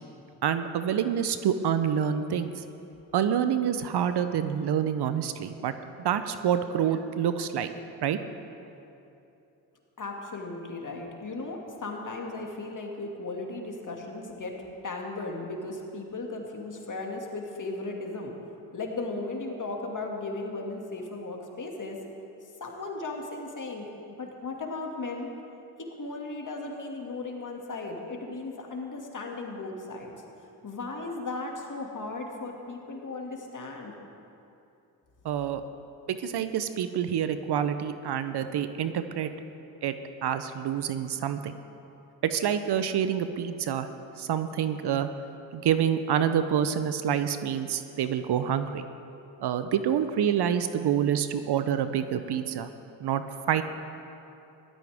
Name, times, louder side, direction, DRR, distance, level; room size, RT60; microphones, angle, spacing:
voice 1, 0.4-2.6 3.1-5.7 6.0-7.7 8.0-8.2 35.2-35.6 36.1-39.3 39.8-41.5 42.2-43.9 44.2-45.1 45.5-48.8 49.4-52.7 53.0-53.6, right 9 dB, 60° right, 10 dB, 0.8 m, -27 dB
voice 2, 10.0-14.6 14.8-18.3 18.7-22.0 22.6-25.3 26.0-30.1 30.6-33.9, left 3 dB, 40° left, 1 dB, 2.4 m, -36 dB
16.5 x 13.0 x 3.6 m, 2.8 s
supercardioid pair, 50°, 45 cm